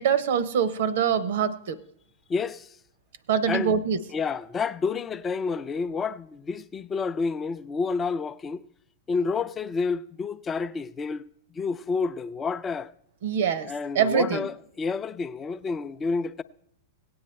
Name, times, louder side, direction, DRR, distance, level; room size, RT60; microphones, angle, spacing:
voice 1, 0.0-1.8 3.3-4.0 13.2-14.5, right 7 dB, 60° right, 0.8 m, -24 dB
voice 2, 2.3-2.8 3.5-3.7 4.1-8.6 9.1-11.3 11.5-12.9 13.7-16.4, left 4 dB, 20° left, 0.5 m, -29 dB
17.5 x 8.8 x 3.2 m
figure-of-eight pair, 95°, 0 cm